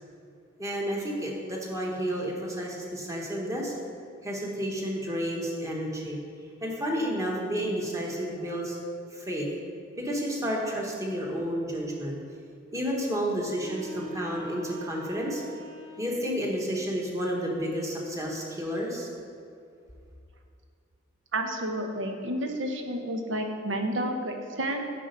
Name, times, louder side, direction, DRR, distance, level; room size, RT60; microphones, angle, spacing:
voice 1, 0.6-3.7 4.2-6.2 6.6-8.8 9.1-9.5 10.0-12.2 12.7-15.4 16.0-19.1, equal, 15° right, -2 dB, 1.3 m, -31 dB
sound 1, 13.5-16.5, right 1 dB, 45° right, 1.8 m, -42 dB
voice 2, 21.3-24.8, right 1 dB, 70° right, 4 dB, 0.9 m, -30 dB
8.5 x 5.3 x 5.3 m, 2.4 s
head